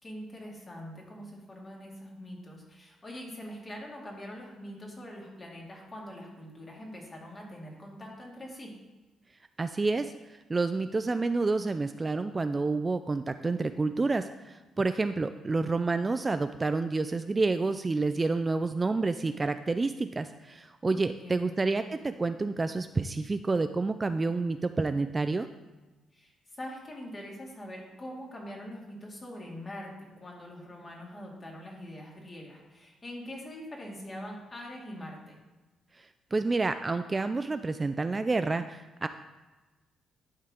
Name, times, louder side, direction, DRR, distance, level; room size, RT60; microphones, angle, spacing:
voice 1, 0.0-8.7 20.9-21.6 26.1-29.9 30.2-35.3, equal, 30° left, -2 dB, 2.3 m, -43 dB
voice 2, 9.6-10.1 10.5-25.5 36.0-36.1 36.3-39.1, right 3 dB, 25° right, 10 dB, 0.3 m, -29 dB
11.5 x 4.6 x 3.7 m, 1.2 s
cardioid pair, 90°, 0 cm